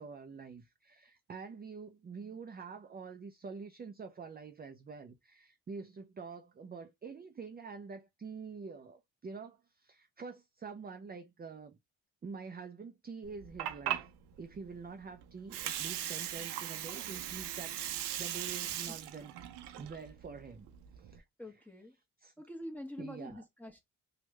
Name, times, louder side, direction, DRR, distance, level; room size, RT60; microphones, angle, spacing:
voice 1, 0.0-11.8 12.2-14.1 14.4-19.3 19.8-20.7 21.0-21.2 22.2-22.3 23.0-23.4, right 5 dB, 25° right, 0.5 m, -46 dB
Water, 13.2-21.2, right 11 dB, 85° right, 0.6 m, -39 dB
voice 2, 21.4-21.9 22.4-23.8, left 1 dB, 5° left, 1.1 m, -45 dB
3.0 x 2.3 x 3.2 m
supercardioid pair, 55°, 40 cm